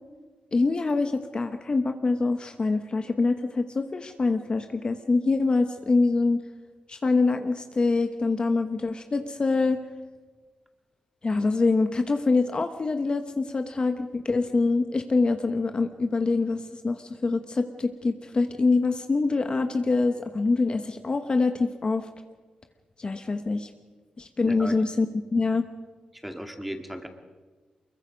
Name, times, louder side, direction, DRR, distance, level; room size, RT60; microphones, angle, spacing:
voice 1, 0.5-6.4 6.9-9.8 11.2-22.1 23.0-23.7 24.2-25.6, left 3 dB, 40° left, 7 dB, 1.1 m, -25 dB
voice 2, 24.4-24.8 26.1-27.1, equal, 5° right, 6 dB, 2.1 m, -36 dB
24.0 x 22.0 x 5.2 m, 1.4 s
cardioid pair, 85°, 2 cm